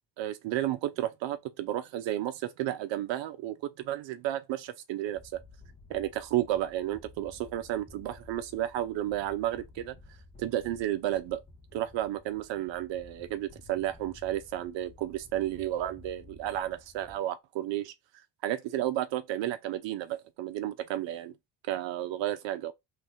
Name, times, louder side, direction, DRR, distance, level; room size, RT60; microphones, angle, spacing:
voice 1, 0.2-5.4 5.9-9.9 10.4-11.4 11.7-17.9 18.4-21.3 21.7-22.7, right 13 dB, 65° right, 0.6 m, -32 dB
sound 1, 5.1-17.2, left 3 dB, 25° left, 1.9 m, -54 dB
3.2 x 2.4 x 3.5 m
supercardioid pair, 60°, 49 cm